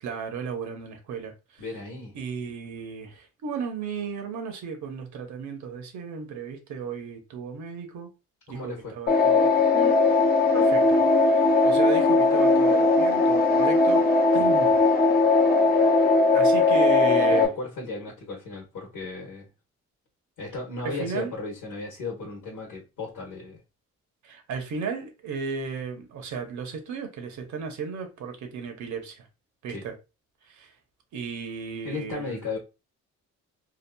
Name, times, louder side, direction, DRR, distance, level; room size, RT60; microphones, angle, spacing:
voice 1, 0.0-1.6 2.1-8.1 8.5-10.0 10.5-11.0 11.3-14.0 14.3-14.8 16.3-17.5 20.8-21.4 24.2-29.3 29.6-29.9 30.5-30.7 31.1-32.4, right 6 dB, 70° right, 0.9 m, -34 dB
voice 2, 1.6-2.1 8.5-9.0 14.4-14.5 17.3-19.5 20.4-23.6 29.7-29.9 31.8-32.6, left 3 dB, 90° left, 1.1 m, -35 dB
sound 1, 9.1-17.5, left 3 dB, 30° left, 0.7 m, -19 dB
2.8 x 2.3 x 2.2 m
cardioid pair, 90°, 30 cm